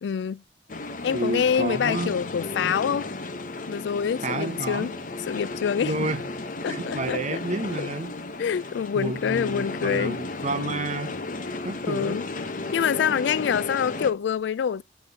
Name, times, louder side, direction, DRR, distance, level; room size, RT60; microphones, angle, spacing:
voice 1, 0.0-0.4 1.0-3.1 3.7-4.9 5.2-6.0 6.6-7.4 7.8-7.9 8.4-10.2 11.5-11.6 11.8-12.3 12.7-14.8, left 7 dB, 85° left, 0.3 m, -26 dB
sound 1, 0.7-14.1, left 2 dB, 50° left, 1.0 m, -34 dB
voice 2, 1.1-2.1 2.6-2.8 4.2-4.9 5.8-6.2 6.7-8.2 8.9-11.2 11.6-12.2, right 2 dB, 45° right, 1.0 m, -30 dB
7.2 x 5.9 x 3.5 m
head